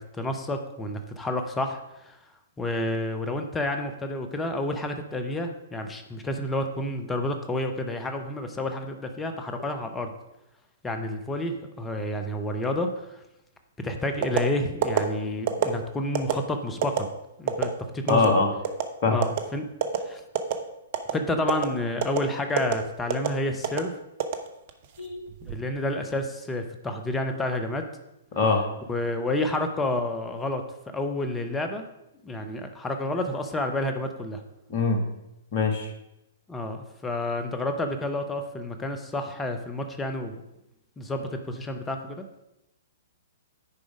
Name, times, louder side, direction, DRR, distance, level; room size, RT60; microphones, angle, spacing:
voice 1, 0.0-1.8 2.1-2.2 2.6-10.1 10.8-13.2 13.8-17.1 17.4-18.2 19.1-19.7 20.0-20.2 21.1-23.9 25.4-27.8 28.9-30.6 30.9-31.8 32.2-34.4 36.5-40.4 41.0-42.2, left 1 dB, 10° left, 6 dB, 0.8 m, -30 dB
sound 1, 14.2-14.4 14.8-15.0 15.5-15.7 16.1-16.3 16.8-17.0 17.5-17.7 18.1-18.3 18.6-18.9 19.2-19.4 19.8-20.0 20.3-20.6 20.9-21.1 21.5-21.7 22.0-22.2 22.6-22.7 23.1-23.3 23.6-23.8 24.2-24.8 25.3-25.6, right 11 dB, 45° right, 0.9 m, -24 dB
voice 2, 18.1-18.5 19.0-19.2 25.0-25.3 28.3-28.6 34.7-35.0 35.5-35.9, left 4 dB, 40° left, 3 dB, 1.6 m, -22 dB
9.7 x 5.0 x 5.0 m, 0.90 s
figure-of-eight pair, 115°, 0 cm